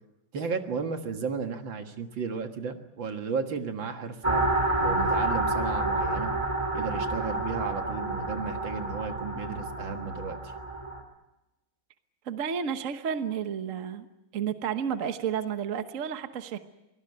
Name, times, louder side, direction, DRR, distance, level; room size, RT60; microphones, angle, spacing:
voice 1, 0.3-4.4 4.8-6.3 6.7-10.5, right 5 dB, 70° right, 6 dB, 2.4 m, -34 dB
sound 1, 4.2-11.0, right 2 dB, 15° right, 3.2 m, -29 dB
voice 2, 12.2-14.1 14.3-16.6, right 8 dB, 45° right, 9 dB, 1.3 m, -31 dB
24.0 x 18.0 x 9.4 m, 1.0 s
omnidirectional pair, 2.2 m